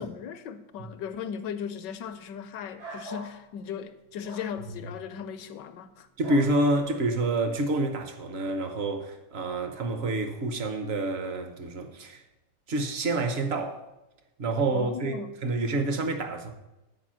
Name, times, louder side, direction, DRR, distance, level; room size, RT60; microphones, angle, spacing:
voice 1, 0.0-6.1 14.7-15.3, left 7 dB, 75° left, 1.0 m, -37 dB
sound 1, 2.8-3.3 4.2-4.5 6.2-6.5, equal, 80° right, 4.6 m, -40 dB
voice 2, 6.2-12.2 12.7-13.8 14.4-16.5, right 2 dB, 65° right, 0.6 m, -28 dB
10.0 x 4.8 x 7.4 m
omnidirectional pair, 2.3 m